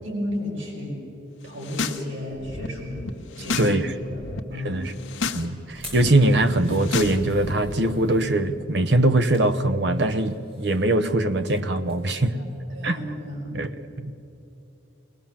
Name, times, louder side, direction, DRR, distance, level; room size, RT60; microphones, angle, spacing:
voice 1, 0.0-1.0 1.4-3.0 3.3-4.9 12.3-12.4 12.7-13.5, left 1 dB, 85° right, -2 dB, 5.3 m, -33 dB
sound 1, 1.5-2.0 2.3-3.7 4.0-4.4 4.9-5.5 5.7-7.8, left 4 dB, 85° left, 1.1 m, -32 dB
voice 2, 5.3-12.4 12.8-13.0 13.5-13.7 14.0-14.1, right 1 dB, 60° right, 8 dB, 1.0 m, -22 dB
sound 2, 5.7-8.3 8.9-9.5 9.9-11.6 11.9-12.1 12.5-12.6, equal, 30° right, 5.8 m, -47 dB
21.5 x 20.0 x 7.3 m, 2.9 s
head